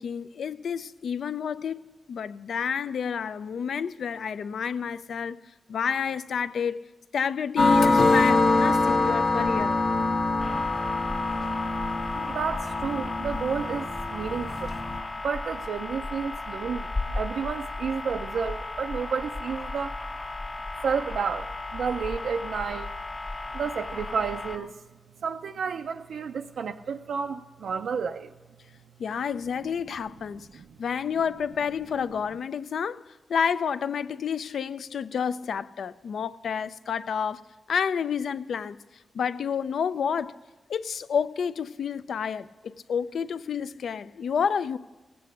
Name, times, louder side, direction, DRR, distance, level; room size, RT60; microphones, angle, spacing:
voice 1, 0.0-5.4 5.7-6.9 7.1-9.8 29.0-30.5 30.8-37.4 37.7-38.8 39.1-40.3 40.7-44.8, left 7 dB, 75° left, 0.4 m, -30 dB
sound 1, 7.6-15.0, left 3 dB, 55° left, 1.1 m, -24 dB
sound 2, 10.4-24.6, left 2 dB, 25° left, 1.2 m, -35 dB
voice 2, 12.1-14.7 15.2-20.0 20.8-22.9 23.5-24.7 25.2-28.3 30.5-30.7, right 6 dB, 90° right, 0.4 m, -31 dB
17.5 x 8.5 x 6.5 m
wide cardioid pair, 155°, 0 cm